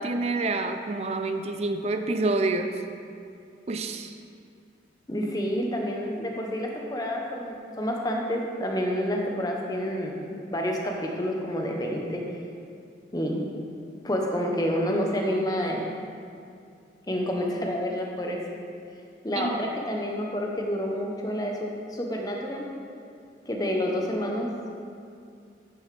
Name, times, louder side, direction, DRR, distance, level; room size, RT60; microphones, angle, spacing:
voice 1, 0.0-2.7 3.7-4.1 19.4-19.6, right 2 dB, 35° right, 6 dB, 0.4 m, -27 dB
voice 2, 5.1-10.2 10.5-12.2 13.1-13.4 14.0-15.9 17.1-18.4 19.2-22.7 23.5-24.5, equal, 20° left, 0 dB, 0.8 m, -28 dB
9.7 x 6.4 x 3.3 m, 2.4 s
head